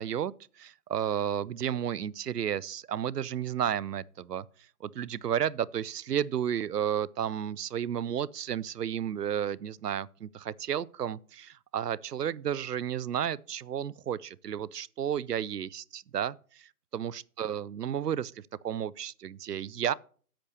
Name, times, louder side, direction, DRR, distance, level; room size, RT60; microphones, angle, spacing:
voice 1, 0.0-4.5 4.8-19.9, right 9 dB, 85° right, 0.6 m, -32 dB
8.6 x 5.8 x 6.4 m
figure-of-eight pair, 155°, 47 cm